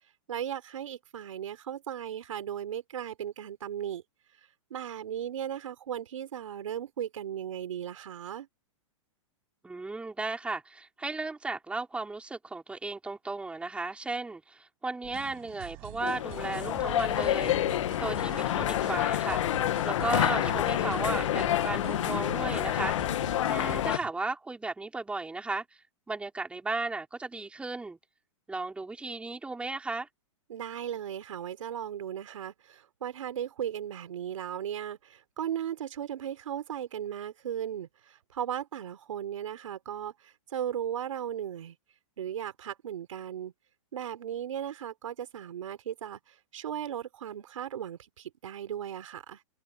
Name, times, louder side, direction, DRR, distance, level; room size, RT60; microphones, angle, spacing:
voice 1, 0.3-4.0 4.7-8.5 20.3-20.7 30.5-41.8 42.2-43.5 43.9-49.4, right 10 dB, 80° right, 3.9 m, -36 dB
voice 2, 9.6-17.5 18.0-19.4 19.8-23.0 23.5-25.6 26.1-28.0 28.5-30.1, right 3 dB, 5° right, 4.8 m, -35 dB
sound 1, 15.0-24.1, right 29 dB, 45° right, 6.8 m, -45 dB
sound 2, 16.0-24.0, left 12 dB, 70° left, 1.5 m, -28 dB
hypercardioid pair, 140°, 17 cm